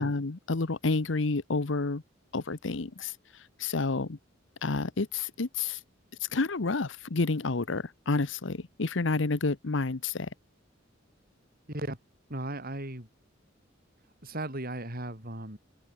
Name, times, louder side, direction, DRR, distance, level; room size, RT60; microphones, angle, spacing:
voice 1, 0.0-2.0 2.3-3.1 3.6-4.2 4.6-5.8 6.2-10.3, left 3 dB, 70° left, 1.0 m, -29 dB
voice 2, 12.3-13.1 14.2-15.6, right 1 dB, 50° right, 7.0 m, -36 dB
head